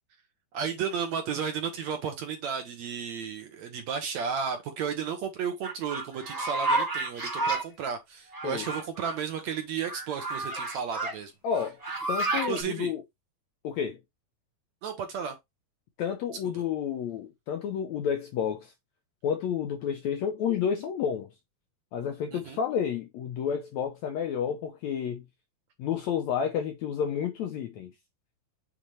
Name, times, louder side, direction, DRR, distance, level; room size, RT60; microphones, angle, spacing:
voice 1, 0.5-11.3 12.4-12.9 14.8-15.4 22.3-22.6, right 7 dB, 65° right, 1.9 m, -33 dB
sound 1, 5.6-7.6 8.3-9.2 9.8-11.1 11.5-12.6, right 2 dB, 30° right, 0.6 m, -30 dB
voice 2, 11.4-11.8 12.1-13.0 13.6-14.0 16.0-18.7 19.2-21.3 21.9-25.3 25.8-27.9, left 8 dB, 75° left, 1.7 m, -30 dB
7.6 x 4.1 x 3.3 m
omnidirectional pair, 4.1 m